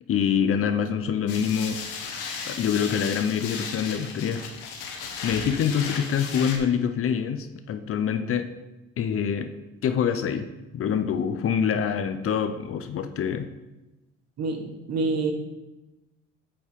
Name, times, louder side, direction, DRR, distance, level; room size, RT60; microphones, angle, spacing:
voice 1, 0.1-1.8 2.4-4.5 5.2-8.5 9.0-9.5 9.8-10.5 10.7-13.5, left 7 dB, 45° left, 9 dB, 0.7 m, -25 dB
sound 1, 1.3-6.6, left 5 dB, 90° left, 1.3 m, -35 dB
voice 2, 14.4-15.3, right 3 dB, 55° right, 4 dB, 1.5 m, -27 dB
8.4 x 7.1 x 3.6 m, 1.0 s
cardioid pair, 95°, 30 cm